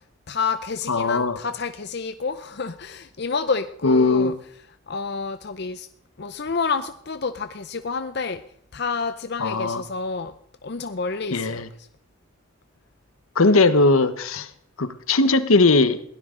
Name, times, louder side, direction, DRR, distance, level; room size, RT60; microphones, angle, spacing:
voice 1, 0.3-4.3 4.9-5.9 6.2-8.4 8.7-10.3 10.6-11.6, left 4 dB, 50° left, 10 dB, 0.6 m, -29 dB
voice 2, 0.9-1.4 3.8-4.4 9.4-9.8 11.3-11.7 13.3-14.5 14.8-16.0, left 3 dB, 80° left, 12 dB, 1.1 m, -19 dB
22.0 x 16.5 x 3.8 m, 0.65 s
head